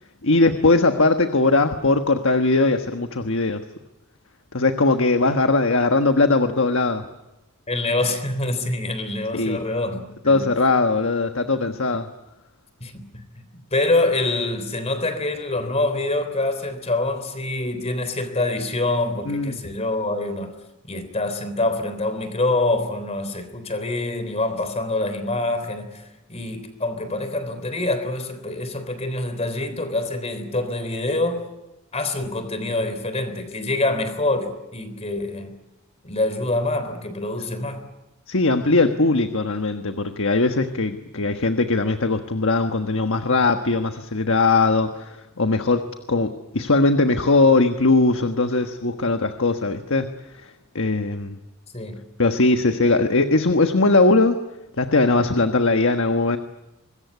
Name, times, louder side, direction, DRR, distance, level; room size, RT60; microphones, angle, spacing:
voice 1, 0.2-3.6 4.5-7.0 9.3-9.6 10.2-12.1 19.3-19.6 38.3-50.1 50.4-51.4 52.2-54.4 54.8-56.4, left 3 dB, 60° left, 1.4 m, -20 dB
voice 2, 7.7-10.5 12.8-20.5 20.8-31.5 31.9-35.5 36.0-37.8 51.7-52.0, left 2 dB, 30° left, 3.5 m, -25 dB
25.0 x 21.5 x 9.5 m
head